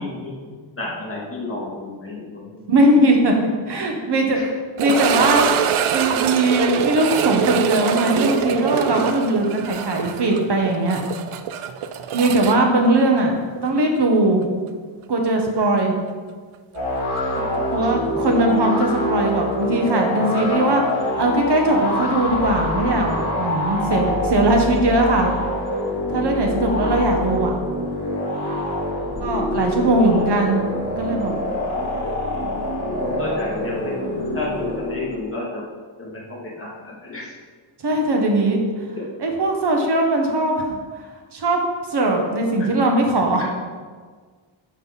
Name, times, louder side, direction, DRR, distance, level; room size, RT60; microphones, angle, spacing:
voice 1, 0.0-2.7 4.3-4.5 17.3-18.3 29.0-29.5 30.1-30.2 31.7-31.9 33.0-34.1 34.3-35.6 36.0-37.3 42.6-42.7 43.4-43.5, left 2 dB, 25° left, -5 dB, 2.5 m, -32 dB
voice 2, 2.7-4.4 4.8-5.5 5.9-11.0 12.1-13.4 13.6-14.5 15.1-16.0 17.7-20.8 21.2-25.3 26.1-27.5 29.2-30.6 31.0-31.4 31.8-32.0 37.8-38.9 39.2-40.8 41.3-41.6 41.9-43.4, right 1 dB, 55° right, 2 dB, 1.5 m, -20 dB
sound 1, 4.8-13.7 14.0-14.1 14.7-14.8 17.4-17.5, right 8 dB, 90° right, 0.6 m, -24 dB
sound 2, 16.7-35.2, left 1 dB, 70° left, 2.1 m, -25 dB
10.0 x 5.5 x 4.1 m, 1.5 s
wide cardioid pair, 140°, 48 cm